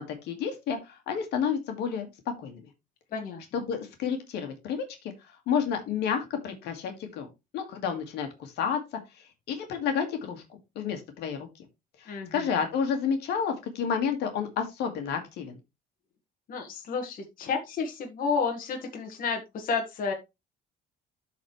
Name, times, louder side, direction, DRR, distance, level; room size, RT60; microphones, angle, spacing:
voice 1, 0.0-2.1 2.4-2.6 3.5-5.1 5.5-7.3 7.5-11.5 12.0-15.6, left 7 dB, 80° left, 5 dB, 1.9 m, -30 dB
voice 2, 12.1-12.5 16.5-20.1, left 5 dB, 55° left, 2 dB, 1.6 m, -31 dB
12.5 x 4.3 x 3.1 m, 0.23 s
cardioid pair, 110°, 17 cm